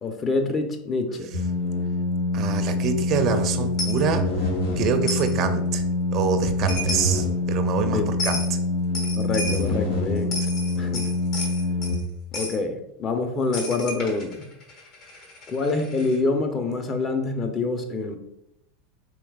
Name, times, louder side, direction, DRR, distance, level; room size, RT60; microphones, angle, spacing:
voice 1, 0.0-1.3 7.9-8.1 9.2-10.4 10.8-11.0 12.3-14.5 15.5-18.2, left 3 dB, 30° left, 7 dB, 0.6 m, -26 dB
sound 1, 1.3-11.9, left 2 dB, 75° left, 1.2 m, -25 dB
voice 2, 2.3-4.3 4.8-5.8 6.1-8.6, right 6 dB, 45° right, 9 dB, 0.4 m, -26 dB
Coin (dropping), 3.8-4.0 5.1-5.3 6.4-6.5 6.7-7.2 8.2-8.5 8.9-9.7 10.2-12.0 12.3-12.6 13.5-16.2, left 1 dB, 50° left, 1.0 m, -33 dB
4.5 x 3.2 x 2.3 m, 0.81 s
hypercardioid pair, 90°, 0 cm